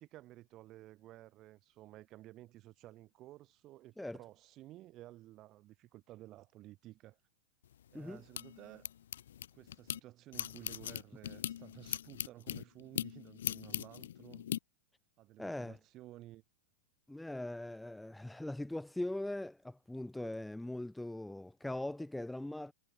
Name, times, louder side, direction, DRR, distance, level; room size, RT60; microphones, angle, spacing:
voice 1, 0.0-7.2 7.9-8.9 9.5-14.5 15.2-16.4, right 15 dB, 35° right, 3.5 m, -54 dB
sound 1, 7.7-10.0 10.3-14.6, left 10 dB, 85° left, 1.0 m, -40 dB
voice 2, 15.4-15.8 17.1-22.7, left 1 dB, 5° left, 2.1 m, -41 dB
supercardioid pair, 140°, 0 cm